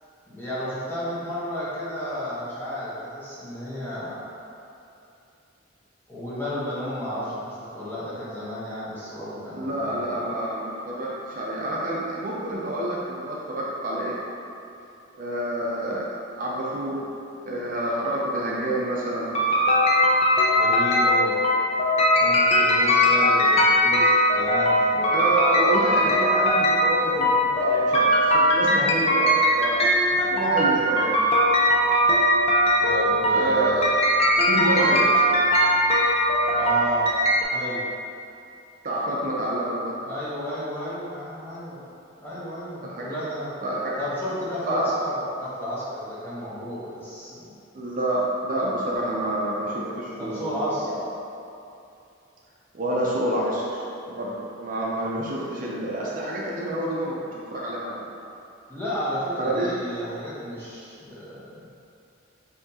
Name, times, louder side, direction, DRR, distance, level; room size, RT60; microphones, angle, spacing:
voice 1, 0.3-4.2 6.1-10.3 20.5-21.4 22.2-25.3 32.8-33.8 36.5-37.1 37.5-37.9 40.1-41.9 42.2-43.5 44.0-47.5 50.2-50.9 58.7-61.7, equal, 10° left, -10 dB, 1.0 m, -32 dB
voice 2, 9.6-14.2 15.1-16.1 16.4-17.1 17.5-19.3 25.1-31.3 33.3-33.9 34.4-35.2 38.8-40.0 42.8-43.1 43.6-44.0 44.6-44.8 47.7-50.5 50.8-51.0 52.7-57.2 57.5-58.1 59.4-59.7, right 1 dB, 45° right, -5 dB, 0.5 m, -28 dB
sound 1, 19.3-37.4, equal, 30° left, 0.5 m, -20 dB
5.8 x 2.8 x 2.8 m, 2.7 s
head